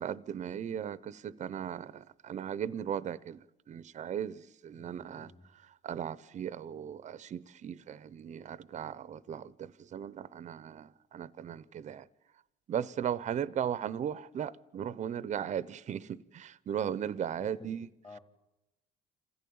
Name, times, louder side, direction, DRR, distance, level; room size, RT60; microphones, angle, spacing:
voice 1, 0.0-5.3 5.8-12.0 12.7-17.9, right 9 dB, 45° right, 0.7 m, -37 dB
voice 2, 4.7-5.5 17.3-18.2, left 3 dB, 30° left, 2.6 m, -53 dB
27.5 x 15.0 x 8.6 m
cardioid pair, 110°, 17 cm